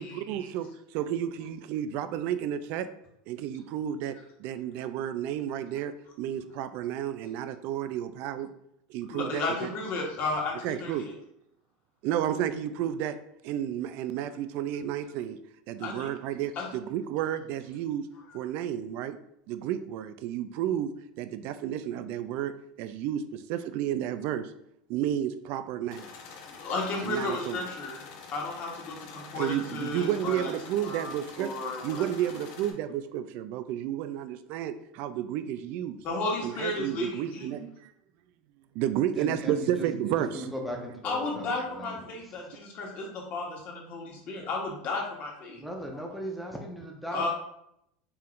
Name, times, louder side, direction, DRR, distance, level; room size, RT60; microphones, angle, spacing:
voice 1, 0.0-2.9 3.3-8.5 8.9-9.7 10.6-11.1 12.0-13.2 13.4-15.4 15.7-18.1 18.3-19.2 19.5-24.5 24.9-26.1 27.0-27.6 29.4-31.5 31.8-36.0 36.4-37.9 38.7-40.5, right 10 dB, 55° right, 11 dB, 0.4 m, -32 dB
voice 2, 9.1-11.1 15.8-16.1 16.5-16.7 26.6-28.0 28.3-30.5 30.8-31.1 31.4-32.0 36.0-37.5 41.0-45.6 47.1-47.3, left 3 dB, 45° left, -1 dB, 1.3 m, -33 dB
sound 1, 25.9-32.7, left 5 dB, 65° left, 0.9 m, -46 dB
voice 3, 39.1-42.4 45.5-47.3, equal, ahead, 0 dB, 0.8 m, -39 dB
4.5 x 3.6 x 2.5 m, 0.77 s
supercardioid pair, 125°, 4 cm